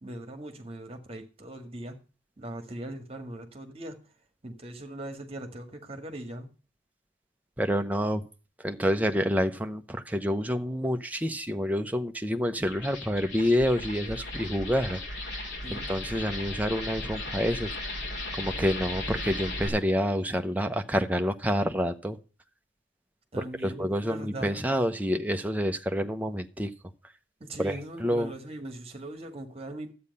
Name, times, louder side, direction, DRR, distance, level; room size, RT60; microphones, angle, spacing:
voice 1, 0.0-2.0 2.4-4.0 4.4-6.5 15.6-15.9 23.3-24.6 27.4-29.9, right 1 dB, 30° right, 1.7 m, -40 dB
voice 2, 7.6-8.2 8.6-17.9 18.4-22.2 23.4-26.7 27.6-28.3, equal, 10° right, 0.7 m, -28 dB
sound 1, 12.6-19.7, left 2 dB, 70° left, 3.5 m, -36 dB
12.0 x 8.7 x 5.3 m
head